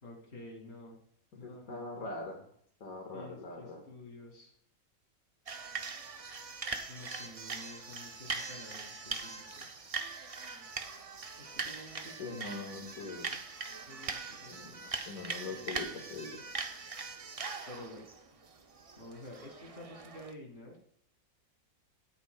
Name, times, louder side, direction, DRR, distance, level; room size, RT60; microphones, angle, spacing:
voice 1, 0.0-1.0 1.4-1.8 3.1-4.5 6.9-9.7 11.4-12.5 13.9-15.1 17.6-18.0 19.0-20.8, left 1 dB, 45° left, 0 dB, 2.9 m, -50 dB
voice 2, 1.4-2.4 2.8-3.8 12.2-13.3 14.5-14.7 15.1-16.3, left 3 dB, 80° left, 0 dB, 2.1 m, -42 dB
sound 1, 5.5-20.3, right 4 dB, 35° right, 0.5 m, -41 dB
16.0 x 8.6 x 2.3 m, 0.66 s
omnidirectional pair, 1.5 m